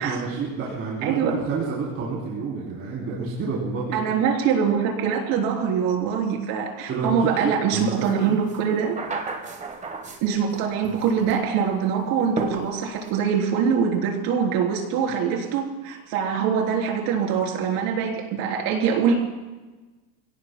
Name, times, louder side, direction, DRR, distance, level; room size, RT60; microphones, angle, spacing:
voice 1, 0.0-4.0 6.9-8.1, right 4 dB, 35° right, -5 dB, 3.4 m, -29 dB
voice 2, 1.0-1.4 3.9-9.0 10.2-19.2, right 7 dB, 55° right, 0 dB, 3.8 m, -23 dB
sound 1, 8.0-8.1 8.5-10.6 10.8-11.5 12.4-13.1, right 3 dB, 15° right, 1.3 m, -33 dB
28.0 x 17.0 x 2.3 m, 1.2 s
supercardioid pair, 145°, 42 cm